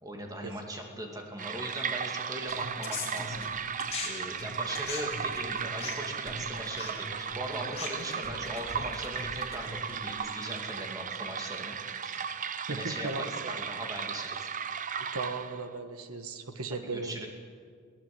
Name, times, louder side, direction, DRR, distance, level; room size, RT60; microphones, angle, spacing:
voice 1, 0.0-3.4 4.0-11.8 12.0-12.2 12.7-14.5 16.7-17.3, right 1 dB, 15° right, 2 dB, 2.6 m, -40 dB
sound 1, 1.4-15.7, right 7 dB, 35° right, 0.7 m, -36 dB
sound 2, 2.5-4.1 4.4-10.1, left 4 dB, 30° left, 3.8 m, -40 dB
voice 2, 12.7-13.6 15.0-17.3, right 3 dB, 80° right, 7 dB, 1.5 m, -37 dB
23.0 x 17.0 x 7.9 m, 2.1 s
head